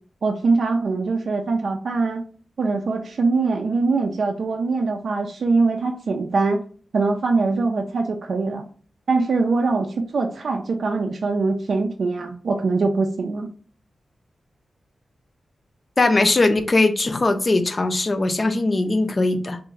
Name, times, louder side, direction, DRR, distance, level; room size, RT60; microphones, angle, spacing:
voice 1, 0.2-2.2 2.6-6.6 6.9-8.6 9.1-13.5, right 3 dB, 70° right, 3 dB, 0.4 m, -22 dB
voice 2, 16.0-19.6, left 2 dB, 40° left, 8 dB, 0.5 m, -20 dB
3.4 x 2.5 x 3.1 m, 0.42 s
cardioid pair, 70°, 0 cm